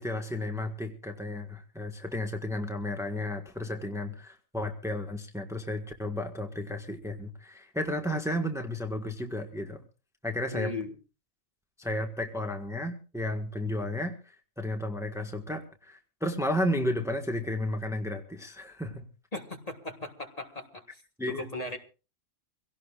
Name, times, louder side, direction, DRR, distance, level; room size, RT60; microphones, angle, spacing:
voice 1, 0.0-9.8 10.2-10.7 11.8-19.1 21.2-21.5, left 1 dB, 5° right, 4 dB, 1.4 m, -33 dB
voice 2, 10.5-11.0 19.3-21.8, left 2 dB, 35° left, 4 dB, 1.7 m, -37 dB
25.0 x 17.0 x 2.4 m, 0.34 s
omnidirectional pair, 1.2 m